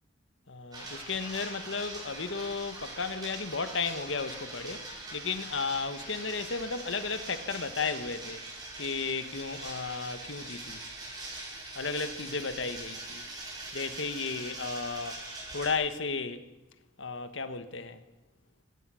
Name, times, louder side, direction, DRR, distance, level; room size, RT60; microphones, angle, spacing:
voice 1, 0.5-8.4 8.8-10.8 11.8-13.2 13.7-15.2 15.5-16.4 17.0-18.0, left 4 dB, 70° left, 1.5 m, -34 dB
sound 1, 0.7-15.7, right 2 dB, 20° right, 6.9 m, -42 dB
24.5 x 17.0 x 6.4 m
head